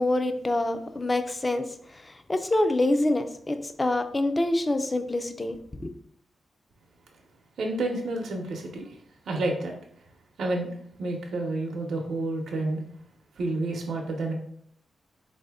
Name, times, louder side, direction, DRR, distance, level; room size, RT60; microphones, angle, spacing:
voice 1, 0.0-1.7 1.9-5.9, left 1 dB, 20° left, 8 dB, 0.3 m, -26 dB
voice 2, 7.6-9.0 9.3-9.7 10.4-10.7 11.0-12.8 13.4-14.3, right 2 dB, 80° right, 1 dB, 0.7 m, -29 dB
4.0 x 2.7 x 3.4 m, 0.64 s
wide cardioid pair, 130°, 0 cm